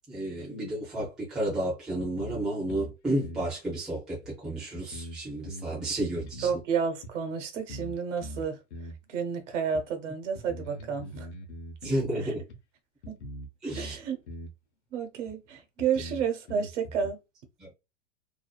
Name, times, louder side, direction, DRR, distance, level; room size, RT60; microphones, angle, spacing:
voice 1, 0.1-6.5 11.8-12.4 13.6-14.0 17.6-17.7, right 1 dB, ahead, 0.4 m, -32 dB
sound 1, 1.0-1.1 1.5-1.6 2.0-3.0 3.2-3.5 4.2-4.3 4.7-6.6 7.0-7.1 7.7-8.0 8.2-9.0 9.7-9.8 10.3-12.1 12.5-12.6 13.0-14.0 14.3-14.5 15.3-15.4 15.8-17.1, equal, 65° left, 0.7 m, -41 dB
voice 2, 6.4-8.6 9.1-11.3 11.8-11.9 12.2-12.3 13.1-13.2 13.7-14.2 14.9-17.2, right 6 dB, 85° right, 0.9 m, -31 dB
2.6 x 2.2 x 2.3 m
supercardioid pair, 170°, 35 cm